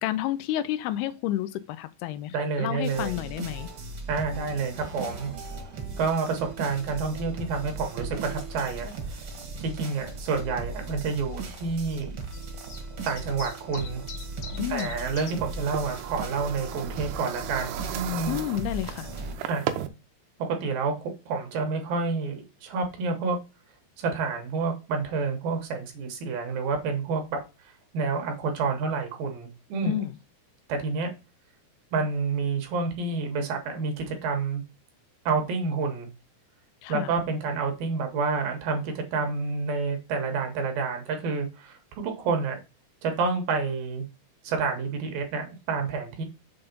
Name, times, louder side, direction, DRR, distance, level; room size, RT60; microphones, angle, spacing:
voice 1, 0.0-3.7 14.5-15.0 18.3-19.1 29.8-30.1 36.8-37.1, left 13 dB, 80° left, 2.5 m, -30 dB
voice 2, 2.3-3.2 4.1-5.3 6.0-8.9 9.6-12.2 13.1-14.0 14.7-18.4 19.5-19.6 20.4-23.4 24.0-27.4 27.9-30.0 30.7-31.1 31.9-34.6 35.3-36.1 36.9-41.8 42.0-42.6 43.0-44.1 44.4-46.3, right 4 dB, 70° right, 2.6 m, -29 dB
sound 1, 2.8-19.4, right 3 dB, 50° right, 1.7 m, -38 dB
sound 2, 5.6-18.2, left 4 dB, 65° left, 3.2 m, -50 dB
sound 3, 14.6-19.9, right 11 dB, 85° right, 2.8 m, -37 dB
6.9 x 3.6 x 5.2 m
omnidirectional pair, 4.7 m